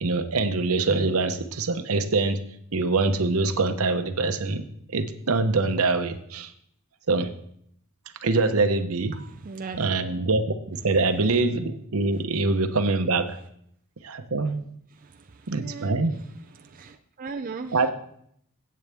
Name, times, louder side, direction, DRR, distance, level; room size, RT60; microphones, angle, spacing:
voice 1, 0.0-2.4 2.7-4.6 4.9-6.5 7.1-7.3 8.2-9.1 9.8-13.4 14.0-14.7 15.5-16.1 17.7-17.9, right 3 dB, 75° right, 9 dB, 0.8 m, -24 dB
voice 2, 9.1-9.8 14.9-16.0 16.5-17.9, right 4 dB, 35° right, 5 dB, 0.4 m, -38 dB
14.0 x 8.6 x 3.5 m, 0.71 s
head